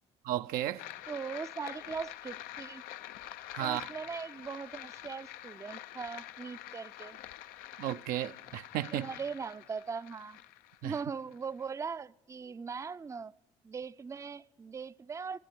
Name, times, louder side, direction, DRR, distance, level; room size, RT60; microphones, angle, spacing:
voice 1, 0.2-0.9 3.5-3.9 7.8-9.1 10.8-11.0, right 12 dB, 70° right, 0.5 m, -34 dB
sound 1, 0.8-11.7, left 13 dB, 75° left, 0.5 m, -47 dB
voice 2, 1.1-2.8 3.6-7.2 8.9-10.4 10.8-13.3 13.6-15.4, right 5 dB, 20° right, 0.4 m, -40 dB
26.0 x 9.2 x 4.5 m
hypercardioid pair, 65°, 15 cm